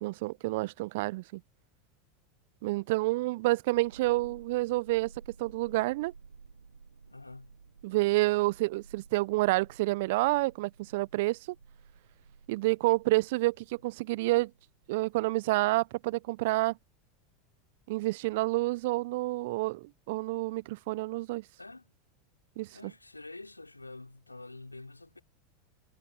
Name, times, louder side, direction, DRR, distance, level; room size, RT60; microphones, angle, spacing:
voice 1, 0.0-1.4 2.6-5.1 5.4-6.1 7.8-11.4 12.5-14.5 14.9-16.8 17.9-21.4 22.6-22.7, right 21 dB, 60° right, 0.7 m, -29 dB
sound 1, 3.7-16.2, right 5 dB, 85° right, 4.1 m, -55 dB
voice 2, 7.1-7.6 21.4-21.9 22.7-25.2, left 2 dB, 90° left, 3.4 m, -47 dB
figure-of-eight pair, 85°, 0 cm